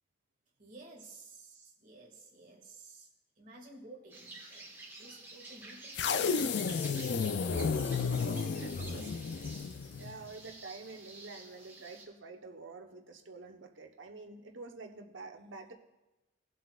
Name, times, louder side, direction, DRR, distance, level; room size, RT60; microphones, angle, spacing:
voice 1, 0.6-3.1 3.4-4.7 4.9-6.3 6.9-7.3 8.0-9.2, right 2 dB, 40° right, -2 dB, 2.1 m, -53 dB
sound 1, 4.1-12.0, right 2 dB, 10° right, 1.6 m, -50 dB
sound 2, 5.9-10.2, left 5 dB, 60° left, 0.4 m, -32 dB
voice 2, 10.0-15.7, right 3 dB, 80° right, 4 dB, 1.0 m, -48 dB
18.5 x 7.6 x 2.4 m, 1.0 s
head